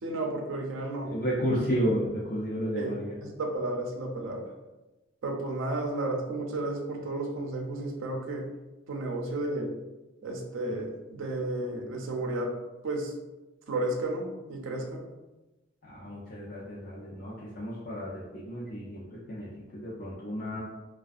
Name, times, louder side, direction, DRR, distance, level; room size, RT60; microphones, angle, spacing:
voice 1, 0.0-1.1 2.7-2.9 3.2-4.5 5.2-8.5 8.9-9.7 10.2-12.5 12.8-13.1 13.7-15.0, right 2 dB, 90° right, 2 dB, 0.5 m, -32 dB
voice 2, 1.0-3.1 15.9-20.6, equal, 45° left, -8 dB, 0.5 m, -32 dB
2.5 x 2.2 x 2.3 m, 1.1 s
head